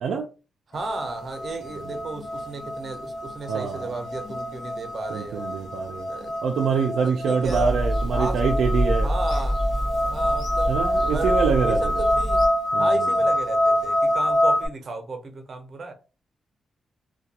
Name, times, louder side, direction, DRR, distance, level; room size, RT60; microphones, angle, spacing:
sound 1, 0.7-14.7, left 1 dB, 85° left, 0.7 m, -26 dB
voice 1, 0.7-5.5 6.1-6.3 6.8-7.7 8.1-8.4 9.0-10.7 11.1-12.4 12.8-15.9, right 3 dB, 55° right, 0.7 m, -35 dB
voice 2, 3.5-3.9 5.1-6.1 6.4-9.1 10.7-11.9 12.7-13.0, right 6 dB, 85° right, 0.3 m, -25 dB
Bird vocalization bird call bird song / Telephone, 7.4-12.5, equal, 45° left, 1.1 m, -27 dB
2.3 x 2.2 x 2.7 m
cardioid pair, 65°, 0 cm